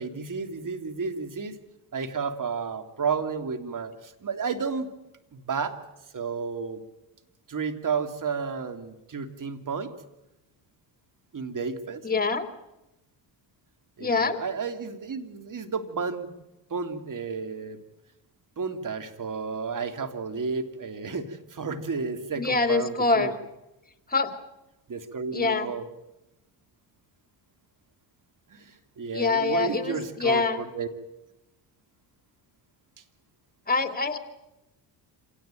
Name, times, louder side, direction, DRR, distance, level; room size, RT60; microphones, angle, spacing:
voice 1, 0.0-1.6 1.9-4.9 5.3-5.8 6.1-6.8 7.5-9.9 11.3-12.0 14.0-16.3 16.7-17.8 18.6-23.3 24.9-25.9 28.5-30.9, right 5 dB, 40° right, 8 dB, 2.9 m, -32 dB
voice 2, 12.0-12.5 14.0-14.4 22.4-23.4 24.1-24.4 25.3-25.7 29.1-30.6 33.7-34.2, left 4 dB, 20° left, 7 dB, 2.9 m, -25 dB
27.0 x 18.0 x 9.1 m, 0.95 s
supercardioid pair, 70°, 48 cm